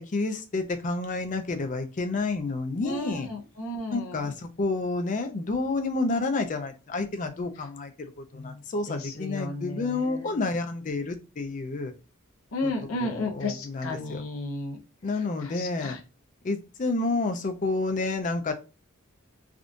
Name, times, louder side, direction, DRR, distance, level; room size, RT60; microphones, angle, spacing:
voice 1, 0.0-3.3 3.9-11.9 12.6-12.7 13.1-14.2 15.0-16.0 16.4-18.5, left 3 dB, 35° left, 0.4 m, -29 dB
voice 2, 2.8-4.3 8.3-10.4 12.5-14.8 15.1-16.0, left 2 dB, 70° left, 0.7 m, -34 dB
3.5 x 2.4 x 2.5 m
head